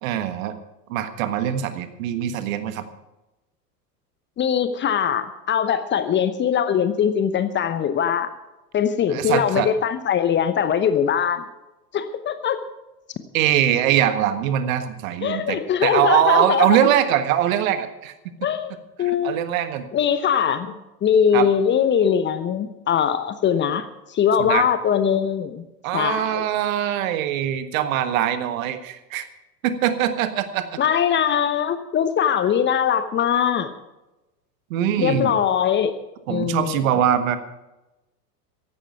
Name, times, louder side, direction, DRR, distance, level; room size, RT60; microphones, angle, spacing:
voice 1, 0.0-0.6 0.9-2.8 9.1-9.7 13.3-18.1 19.0-19.9 21.3-21.5 24.4-24.6 25.8-29.3 29.6-30.7 34.7-35.4 36.3-37.4, right 10 dB, 55° right, 10 dB, 1.6 m, -22 dB
voice 2, 4.4-8.3 8.7-11.4 11.9-12.6 15.2-16.7 18.4-19.4 19.9-25.6 25.9-26.5 30.8-33.7 35.0-35.9 36.3-36.8, left 8 dB, 20° left, 11 dB, 0.9 m, -21 dB
15.0 x 11.5 x 5.8 m, 0.99 s
figure-of-eight pair, 90°, 49 cm